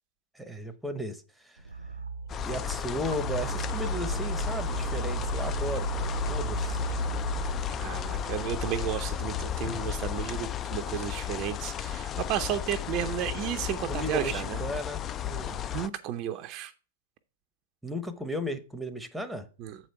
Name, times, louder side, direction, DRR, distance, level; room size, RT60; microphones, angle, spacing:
voice 1, 0.3-1.6 2.5-6.8 13.9-15.6 17.8-19.5, equal, ahead, 0.8 m, -35 dB
sound 1, 1.6-10.2, right 5 dB, 85° right, 0.7 m, -35 dB
sound 2, 2.3-15.9, left 10 dB, 25° left, 0.4 m, -34 dB
voice 2, 7.8-14.6 15.7-16.7 19.6-19.8, right 11 dB, 35° right, 0.6 m, -33 dB
7.6 x 5.1 x 4.5 m
figure-of-eight pair, 105°, 0 cm